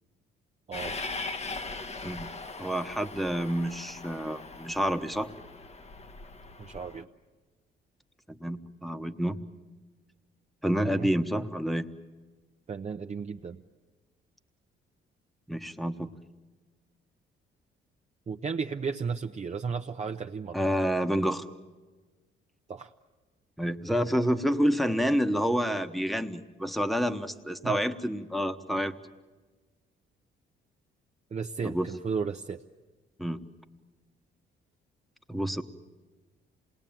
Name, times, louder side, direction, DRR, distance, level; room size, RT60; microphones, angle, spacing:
Train, 0.7-7.0, left 3 dB, 35° left, 1.1 m, -40 dB
voice 1, 2.6-5.3 8.3-9.4 10.6-11.9 15.5-16.1 20.5-21.5 23.6-28.9 31.6-31.9 33.2-33.4 35.3-35.6, equal, ahead, 9 dB, 1.2 m, -28 dB
voice 2, 6.6-7.1 10.9-11.1 12.7-13.6 18.3-20.6 22.7-22.9 27.6-27.8 31.3-32.6, right 5 dB, 35° right, 3 dB, 0.8 m, -34 dB
27.5 x 20.0 x 9.0 m, 1.3 s
cardioid pair, 90°, 20 cm